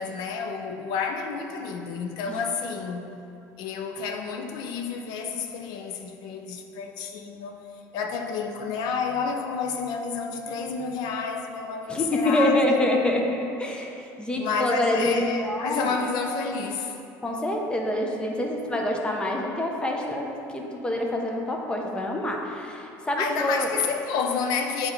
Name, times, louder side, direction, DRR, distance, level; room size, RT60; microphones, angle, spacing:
voice 1, 0.0-3.1 3.6-7.6 7.9-12.8 14.3-17.0 23.2-24.9, left 5 dB, 70° left, 0.6 m, -30 dB
voice 2, 11.9-16.0 17.2-23.7, left 1 dB, 10° left, 0.7 m, -26 dB
8.4 x 3.6 x 3.2 m
cardioid pair, 120°, 7 cm